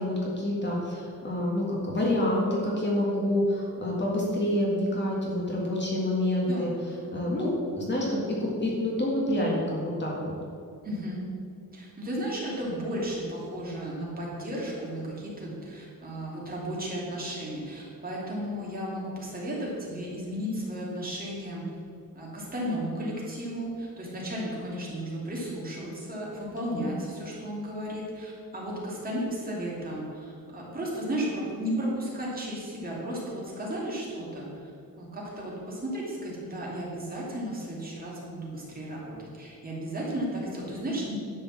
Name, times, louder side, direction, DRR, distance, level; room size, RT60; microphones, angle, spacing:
voice 1, 0.0-6.7 7.1-10.3 26.7-26.9, left 1 dB, 30° left, -3 dB, 1.9 m, -27 dB
voice 2, 6.4-6.7 10.8-11.2 11.7-21.7 22.1-34.7 35.0-41.1, equal, 25° right, -5 dB, 2.8 m, -34 dB
11.0 x 5.4 x 7.4 m, 2.4 s
wide cardioid pair, 165°, 35 cm